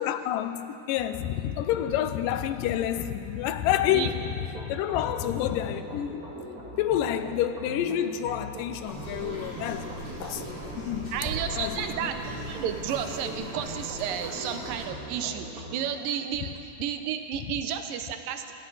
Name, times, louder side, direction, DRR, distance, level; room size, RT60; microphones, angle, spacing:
voice 1, 0.0-6.2 6.8-10.4 10.8-11.1 11.6-11.9, left 11 dB, 85° left, 2.3 m, -28 dB
sound 1, 3.6-15.7, equal, 35° right, 1.9 m, -41 dB
sound 2, 8.9-14.9, right 1 dB, 10° left, 3.1 m, -39 dB
voice 2, 11.1-18.5, right 8 dB, 85° right, 2.6 m, -32 dB
26.5 x 13.5 x 4.0 m
omnidirectional pair, 3.9 m